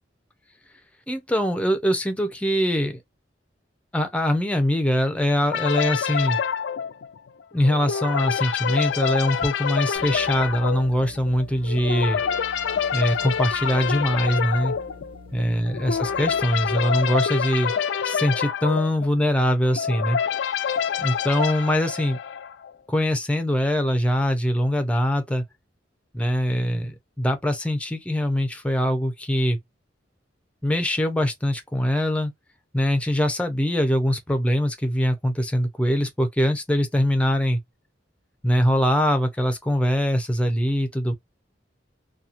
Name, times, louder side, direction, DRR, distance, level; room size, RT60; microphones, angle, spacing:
voice 1, 1.1-3.0 3.9-6.4 7.5-12.2 12.9-14.7 15.3-17.7 18.0-20.2 21.0-22.2 22.9-25.4 26.1-29.6 30.6-32.3 32.7-37.6 38.4-41.1, equal, 5° left, 0.6 m, -23 dB
sound 1, 5.5-22.7, left 7 dB, 70° left, 0.4 m, -27 dB
sound 2, 9.9-16.8, left 1 dB, 30° right, 0.8 m, -46 dB
2.9 x 2.3 x 2.5 m
head